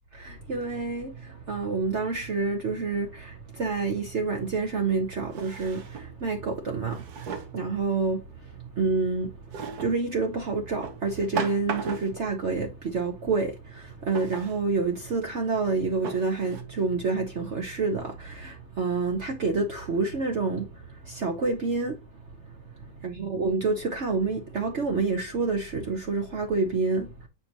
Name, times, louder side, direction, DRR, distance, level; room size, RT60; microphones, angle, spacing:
voice 1, 0.1-27.3, right 4 dB, 50° right, 1.1 m, -28 dB
Drawer open or close, 4.0-4.1 5.3-6.2 6.9-7.6 9.5-10.0 10.8-12.3 14.1-14.6 15.3-15.4 16.0-16.6, right 5 dB, 65° right, 1.5 m, -36 dB
7.2 x 5.1 x 2.9 m
omnidirectional pair, 1.8 m